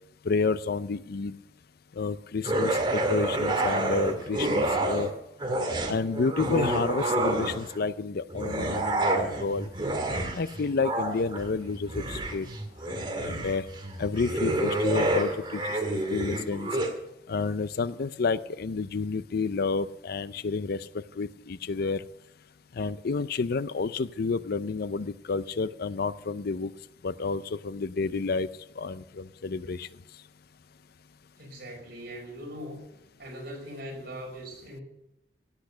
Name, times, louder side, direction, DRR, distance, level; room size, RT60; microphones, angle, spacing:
voice 1, 0.2-1.4 2.0-5.1 5.9-9.7 10.3-12.5 13.2-13.6 14.0-16.7 17.3-20.9 21.2-22.0 22.7-26.7 27.0-28.5 28.8-29.9, left 4 dB, 60° left, 16 dB, 0.5 m, -30 dB
sound 1, 2.4-5.1 5.4-7.8 8.3-16.9, right 1 dB, 25° right, 2.1 m, -28 dB
voice 2, 31.4-32.8 33.2-34.8, equal, 55° right, 0 dB, 5.0 m, -40 dB
16.5 x 8.3 x 5.5 m, 0.88 s
head